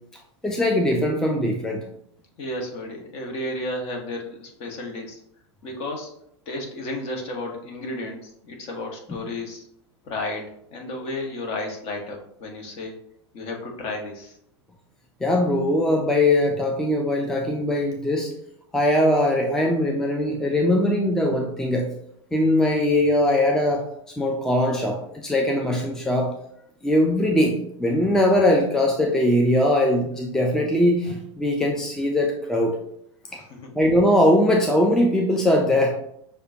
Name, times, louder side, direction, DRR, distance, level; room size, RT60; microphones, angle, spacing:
voice 1, 0.4-1.8 15.2-18.3 18.7-21.9 22.3-23.8 24.2-26.3 26.8-32.8 33.3-33.4 33.7-35.9, left 1 dB, 5° left, 0 dB, 0.5 m, -21 dB
voice 2, 2.4-5.2 5.6-6.1 6.5-9.7 10.0-12.9 13.3-14.4 33.2-33.7, left 1 dB, 40° left, 1 dB, 1.1 m, -33 dB
6.4 x 2.2 x 2.6 m, 0.74 s
figure-of-eight pair, 85°, 15 cm